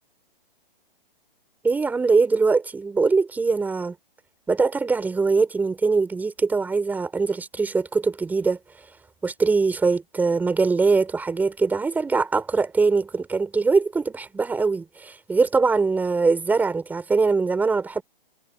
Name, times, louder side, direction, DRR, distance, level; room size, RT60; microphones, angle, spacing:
voice 1, 1.6-3.9 4.5-8.6 9.2-18.0, right 4 dB, 5° right, 6.0 m, -22 dB
hypercardioid pair, 160°, 29 cm